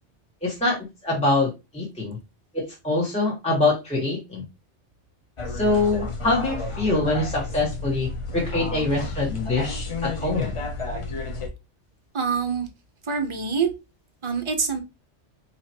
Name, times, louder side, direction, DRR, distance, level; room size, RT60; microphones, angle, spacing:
voice 1, 0.4-2.2 2.5-4.5 5.5-10.5, left 2 dB, 5° left, -4 dB, 1.3 m, -24 dB
sound 1, 5.4-11.5, left 3 dB, 35° left, 0.5 m, -31 dB
voice 2, 12.1-12.7 13.0-13.7 14.2-14.8, right 5 dB, 30° right, 6 dB, 0.7 m, -25 dB
4.8 x 3.0 x 2.9 m, 0.25 s
omnidirectional pair, 1.2 m